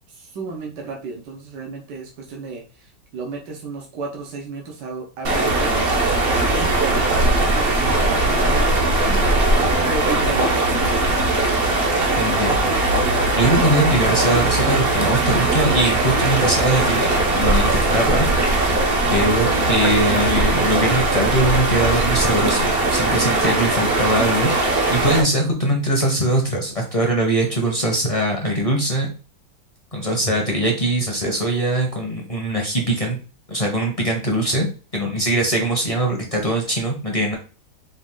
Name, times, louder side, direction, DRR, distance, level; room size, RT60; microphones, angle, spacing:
voice 1, 0.1-2.6 3.1-5.9 6.2-9.6 9.8-10.6, right 4 dB, 85° right, 1 dB, 1.5 m, -33 dB
sound 1, 5.2-25.2, right 2 dB, 50° right, 0.7 m, -19 dB
voice 2, 12.2-12.6 13.4-17.1 17.3-18.3 19.1-29.1 29.9-33.2 33.5-34.7 34.9-37.3, right 1 dB, 30° left, 0 dB, 0.7 m, -21 dB
5.1 x 2.4 x 3.7 m, 0.36 s
omnidirectional pair, 1.8 m